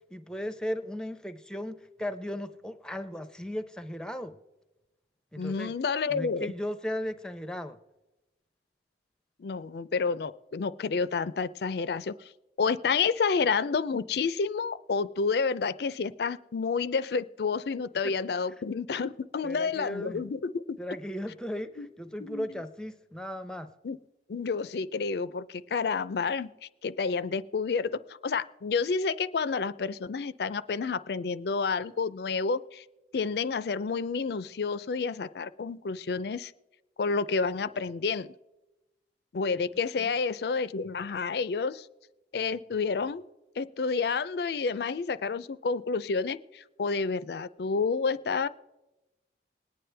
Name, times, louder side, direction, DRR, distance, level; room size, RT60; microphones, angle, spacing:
voice 1, 0.1-4.4 5.3-5.7 6.1-7.8 19.4-20.2 20.8-23.7 40.0-40.1, equal, 5° left, 10 dB, 0.6 m, -36 dB
voice 2, 5.4-6.5 9.4-12.3 12.6-20.8 21.8-21.9 22.2-22.5 23.8-24.0 24.3-27.9 28.2-32.8 33.1-36.5 37.0-38.3 39.3-41.9 42.3-43.2 43.6-48.5, left 5 dB, 60° left, 16 dB, 0.4 m, -29 dB
21.0 x 9.4 x 3.3 m, 0.99 s
head